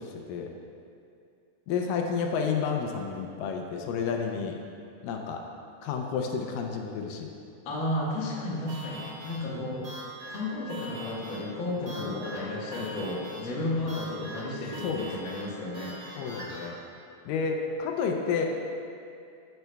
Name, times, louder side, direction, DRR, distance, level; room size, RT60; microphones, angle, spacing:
voice 1, 1.7-4.6 5.0-5.4 5.8-7.3 9.5-9.7 11.8-12.3 12.7-12.8 14.8-15.1 16.2-16.8 17.3-18.5, left 6 dB, 80° left, 2 dB, 2.2 m, -31 dB
voice 2, 7.6-10.0 10.3-16.2, left 1 dB, 55° left, -5 dB, 1.4 m, -33 dB
sound 1, 8.7-16.7, right 1 dB, 70° right, 0.9 m, -43 dB
13.5 x 6.7 x 2.2 m, 2.4 s
omnidirectional pair, 4.0 m